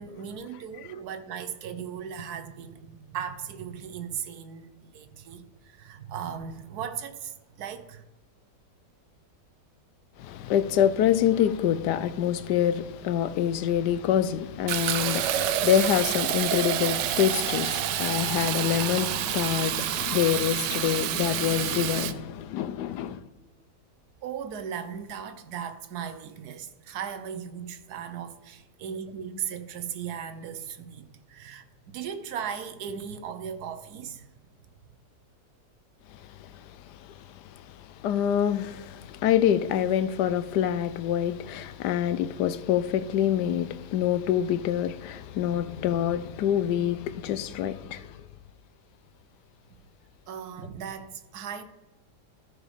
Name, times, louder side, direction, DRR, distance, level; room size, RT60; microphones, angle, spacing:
voice 1, 0.0-8.0 24.2-34.3 50.3-51.6, right 8 dB, 70° right, 1.3 m, -37 dB
voice 2, 10.2-23.2 38.0-48.1, left 10 dB, 80° left, 1.2 m, -26 dB
Fill (with liquid), 14.7-22.1, right 12 dB, 90° right, 1.2 m, -28 dB
13.5 x 4.9 x 5.0 m
omnidirectional pair, 1.8 m